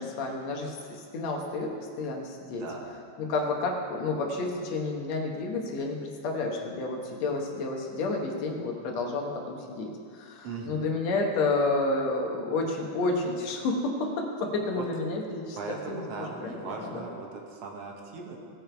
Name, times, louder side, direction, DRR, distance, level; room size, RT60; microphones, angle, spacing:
voice 1, 0.0-2.7 3.2-15.6 15.9-17.0, left 3 dB, 65° left, 1 dB, 2.4 m, -30 dB
voice 2, 2.5-2.9 3.4-3.6 10.4-10.8 14.8-14.9 15.5-18.4, right 4 dB, 60° right, 0 dB, 2.1 m, -39 dB
18.0 x 6.9 x 4.6 m, 2.3 s
omnidirectional pair, 3.5 m